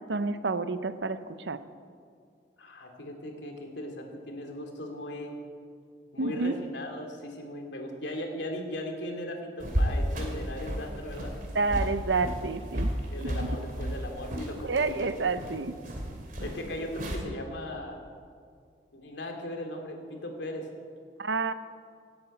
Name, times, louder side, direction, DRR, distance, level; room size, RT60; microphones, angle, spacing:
voice 1, 0.1-1.6 6.2-6.6 11.5-12.9 13.2-13.5 14.6-15.7 21.2-21.5, right 3 dB, 80° right, 12 dB, 0.8 m, -29 dB
voice 2, 2.6-5.4 6.1-11.3 13.1-15.1 16.4-18.0 18.9-20.7, left 1 dB, 80° left, 3 dB, 2.6 m, -38 dB
sound 1, 9.6-17.2, equal, 45° right, 2.6 m, -33 dB
17.0 x 9.0 x 8.4 m, 2.2 s
head